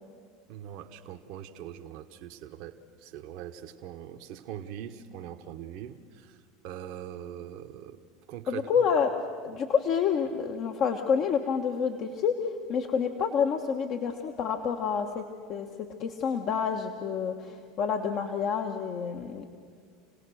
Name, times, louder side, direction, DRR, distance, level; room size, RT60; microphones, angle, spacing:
voice 1, 0.5-2.7 3.0-6.4 6.6-8.0 8.3-8.7, right 10 dB, 60° right, 5 dB, 1.1 m, -42 dB
voice 2, 8.5-9.1 9.4-15.2 15.5-15.7 16.0-19.5, left 6 dB, 50° left, 4 dB, 1.3 m, -28 dB
28.0 x 17.5 x 6.4 m, 2.1 s
hypercardioid pair, 90°, 0 cm